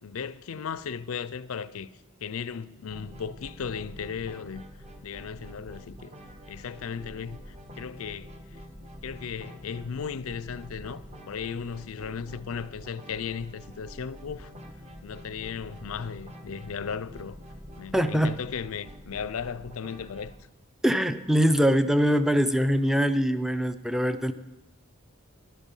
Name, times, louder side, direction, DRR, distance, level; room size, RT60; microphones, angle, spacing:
voice 1, 0.0-1.9 2.2-4.6 5.0-6.2 6.5-8.3 9.0-14.5 15.0-17.4 17.8-20.3, left 6 dB, 80° left, 0.5 m, -36 dB
sound 1, 2.9-20.4, equal, 30° right, 1.1 m, -46 dB
voice 2, 17.9-18.4 20.8-24.3, equal, ahead, 0.5 m, -23 dB
12.5 x 12.0 x 5.5 m
head